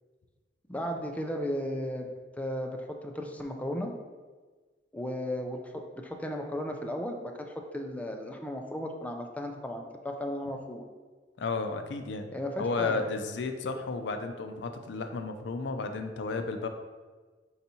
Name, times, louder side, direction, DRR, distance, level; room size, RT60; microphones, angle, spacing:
voice 1, 0.7-2.1 2.4-4.0 4.9-10.8 12.3-13.0, equal, 10° left, 2 dB, 0.4 m, -35 dB
voice 2, 11.4-12.3 12.6-16.7, left 4 dB, 75° left, 7 dB, 0.4 m, -33 dB
4.4 x 4.0 x 2.8 m, 1.4 s
head